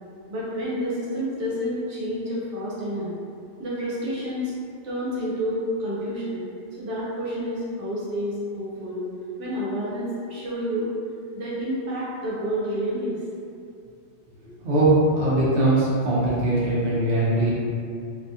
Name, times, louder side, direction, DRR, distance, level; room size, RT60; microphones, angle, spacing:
voice 1, 0.3-3.1 3.6-4.5 4.8-6.4 6.8-9.0 9.4-10.9 11.3-13.2, equal, 85° right, -8 dB, 1.1 m, -29 dB
voice 2, 15.1-17.5, right 1 dB, 55° right, -9 dB, 0.9 m, -21 dB
2.7 x 2.3 x 2.6 m, 2.4 s
omnidirectional pair, 1.2 m